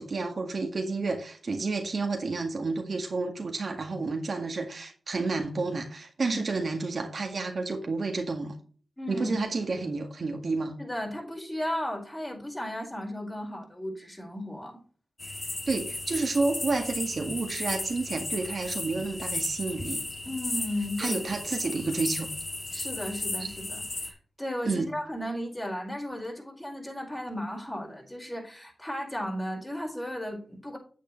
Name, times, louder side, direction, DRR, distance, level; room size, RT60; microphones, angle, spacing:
voice 1, 0.0-8.5 9.1-10.7 15.7-20.1 21.0-22.3 24.6-24.9, right 3 dB, 60° right, 1.8 m, -30 dB
voice 2, 9.0-9.8 10.8-14.8 20.3-21.2 22.7-30.8, left 1 dB, 15° left, 4.9 m, -35 dB
sound 1, 15.2-24.1, left 2 dB, 40° left, 2.6 m, -35 dB
9.3 x 8.1 x 3.2 m
cardioid pair, 55°, 0 cm